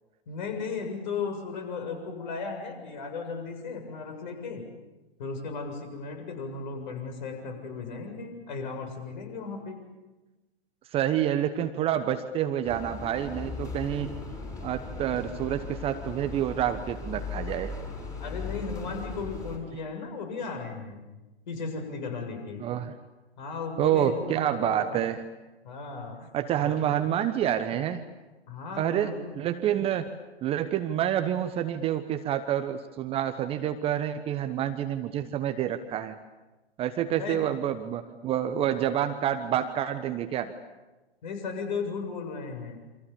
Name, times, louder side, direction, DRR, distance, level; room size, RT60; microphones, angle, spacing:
voice 1, 0.3-4.6 5.2-9.8 18.2-21.0 21.5-22.6 23.4-25.0 25.6-26.3 26.6-26.9 28.5-29.3 37.1-37.5 41.2-42.8, left 4 dB, 45° left, 5 dB, 7.2 m, -36 dB
voice 2, 10.9-14.1 14.6-17.7 22.6-22.9 23.8-25.2 26.3-28.0 28.8-30.1 30.4-36.2 36.8-40.5, right 10 dB, 20° right, 9 dB, 1.1 m, -28 dB
sound 1, 12.6-19.6, left 4 dB, 10° left, 6.2 m, -38 dB
28.5 x 26.0 x 7.2 m, 1.1 s
figure-of-eight pair, 120°, 31 cm